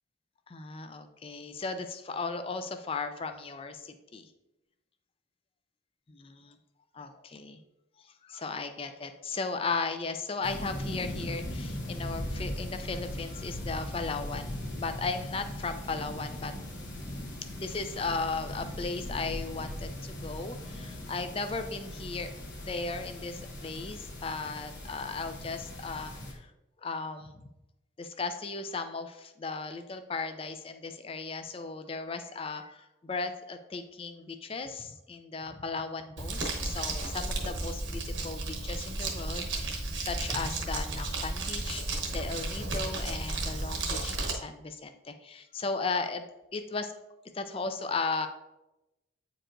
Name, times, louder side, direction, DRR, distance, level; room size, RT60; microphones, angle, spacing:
voice 1, 0.5-4.3 6.1-6.6 6.9-7.6 8.0-16.8 17.6-22.3 22.6-26.5 26.8-27.4 28.0-46.2 46.5-46.9 47.3-48.3, left 4 dB, 30° left, 8 dB, 0.4 m, -36 dB
sound 1, 10.4-26.3, left 1 dB, 65° left, 1.1 m, -39 dB
Crumpling crinkling, 36.2-44.3, right 2 dB, 65° right, 1.0 m, -33 dB
8.8 x 4.6 x 2.5 m, 0.97 s
head